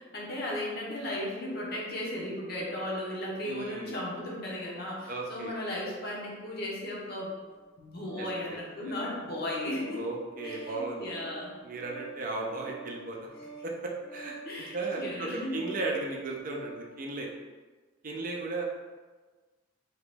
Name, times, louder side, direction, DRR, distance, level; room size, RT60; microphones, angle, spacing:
voice 1, 0.1-7.4 7.8-10.0 10.4-11.5 14.4-15.5, left 1 dB, 55° left, -4 dB, 0.9 m, -36 dB
voice 2, 3.4-3.9 5.1-5.5 8.2-8.6 8.8-8.9 9.9-11.0 11.6-14.4 14.7-17.3 18.0-18.6, right 3 dB, 45° right, 0 dB, 0.5 m, -36 dB
Organ, 7.5-16.9, right 3 dB, 15° left, 0.8 m, -47 dB
3.0 x 2.9 x 3.4 m, 1.3 s
head